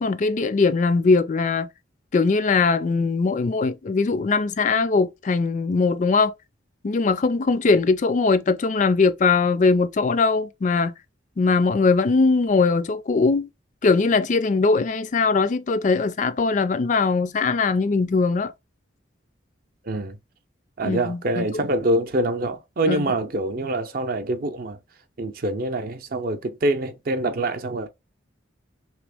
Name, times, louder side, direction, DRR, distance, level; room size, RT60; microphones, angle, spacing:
voice 1, 0.0-1.7 2.1-6.3 6.8-10.9 11.4-13.5 13.8-18.5 20.8-21.6 22.9-23.0, left 4 dB, 40° left, 0.4 m, -21 dB
voice 2, 19.8-20.2 20.8-24.8 25.2-27.9, right 1 dB, 50° right, 0.5 m, -25 dB
3.3 x 3.0 x 3.4 m
head